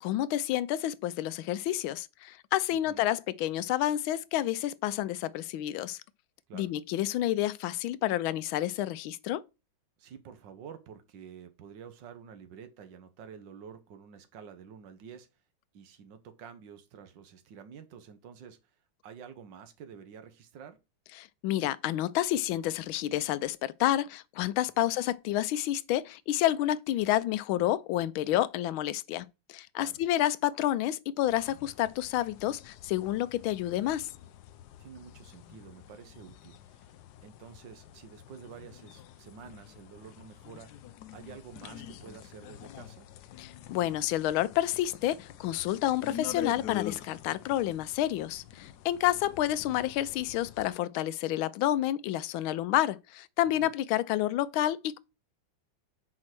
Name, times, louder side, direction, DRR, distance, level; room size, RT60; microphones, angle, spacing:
voice 1, 0.0-6.0 6.5-9.4 21.2-34.1 43.4-55.0, left 13 dB, 85° left, 1.4 m, -29 dB
voice 2, 2.7-3.1 6.5-6.7 10.0-15.3 15.7-18.8 19.0-20.8 24.8-25.0 29.8-30.0 34.8-36.9 37.2-40.7 41.1-43.1 53.4-53.7, right 7 dB, 65° right, 1.7 m, -49 dB
sound 1, 31.2-50.7, left 11 dB, 70° left, 1.0 m, -46 dB
6.3 x 4.8 x 6.0 m
omnidirectional pair, 2.2 m